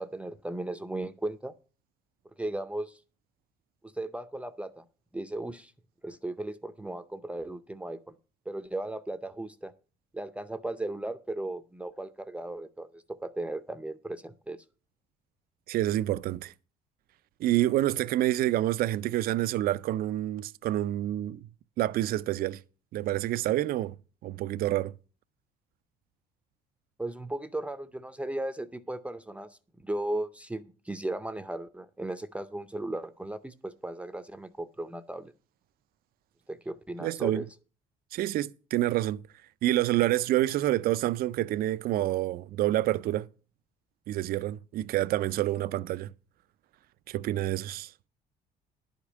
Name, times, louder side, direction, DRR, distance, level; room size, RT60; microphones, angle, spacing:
voice 1, 0.0-1.5 2.4-3.0 3.8-4.8 5.1-5.7 6.0-8.2 8.5-9.7 10.1-14.6 27.0-35.3 36.5-37.5, right 1 dB, 5° right, 0.6 m, -36 dB
voice 2, 15.7-16.5 17.4-21.5 21.8-22.6 22.9-23.9 24.2-24.9 37.0-37.4 38.1-39.2 39.6-43.3 44.1-46.1 47.1-47.9, right 14 dB, 60° right, 0.4 m, -28 dB
11.0 x 5.1 x 7.3 m
cardioid pair, 110°, 17 cm